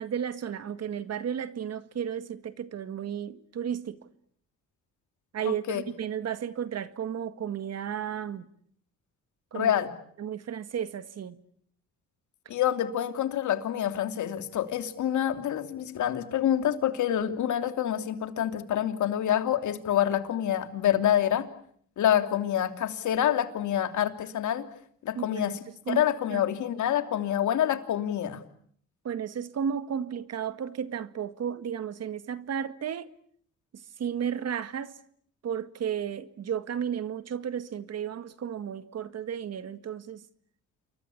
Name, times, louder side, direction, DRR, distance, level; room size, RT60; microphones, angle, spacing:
voice 1, 0.0-4.0 5.3-8.5 9.5-9.7 10.2-11.4 25.2-25.5 25.9-26.1 26.3-26.4 29.0-33.1 34.0-35.0 35.4-40.2, right 8 dB, 55° right, 1.9 m, -33 dB
voice 2, 5.4-5.8 9.5-9.9 12.5-21.5 22.0-24.6 25.0-25.6 25.9-28.4, left 10 dB, 75° left, 3.1 m, -27 dB
29.0 x 23.5 x 8.6 m
cardioid pair, 90°, 30 cm